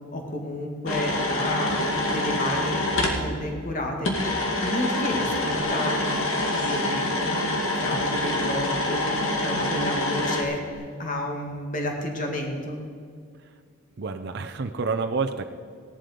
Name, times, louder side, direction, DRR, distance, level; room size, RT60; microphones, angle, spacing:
voice 1, 0.1-4.2 4.6-12.8, left 1 dB, 40° left, 2 dB, 2.1 m, -31 dB
sound 1, 0.9-3.2 4.0-10.4, left 1 dB, 80° left, 2.2 m, -26 dB
sound 2, 5.6-6.9 10.7-10.8, equal, 60° left, 3.3 m, -37 dB
voice 2, 14.0-15.4, right 4 dB, 55° right, 5 dB, 0.6 m, -28 dB
16.5 x 11.5 x 5.2 m, 2.1 s
head